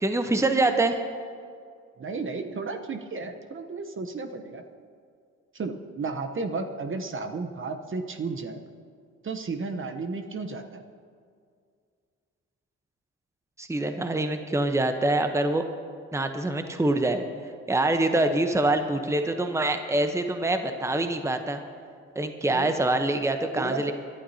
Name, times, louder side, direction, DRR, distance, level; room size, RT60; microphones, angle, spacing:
voice 1, 0.0-1.0 13.6-15.6 16.1-17.2 17.7-21.6 22.1-23.9, right 2 dB, 10° right, 7 dB, 0.9 m, -25 dB
voice 2, 2.0-4.6 5.5-8.6 9.2-10.8 22.5-22.8 23.5-23.9, right 4 dB, 40° right, 6 dB, 1.0 m, -33 dB
22.0 x 11.5 x 2.8 m, 2.2 s
supercardioid pair, 60°, 31 cm